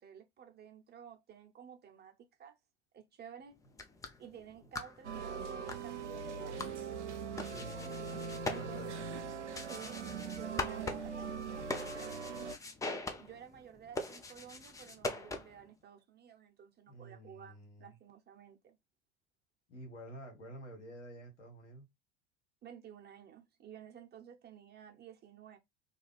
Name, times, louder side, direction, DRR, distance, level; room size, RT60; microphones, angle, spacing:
voice 1, 0.0-2.6 2.9-3.6 4.2-6.9 8.4-8.9 9.6-12.6 13.2-18.8 22.6-25.6, right 8 dB, 30° right, 0.8 m, -53 dB
sound 1, 3.6-15.7, left 2 dB, 10° left, 0.4 m, -43 dB
sound 2, 5.0-12.6, right 5 dB, 90° right, 0.5 m, -41 dB
voice 2, 7.4-7.9 8.4-9.1 16.9-17.9 19.7-21.9, right 1 dB, 85° left, 1.2 m, -50 dB
2.5 x 2.3 x 3.2 m
hypercardioid pair, 75°, 34 cm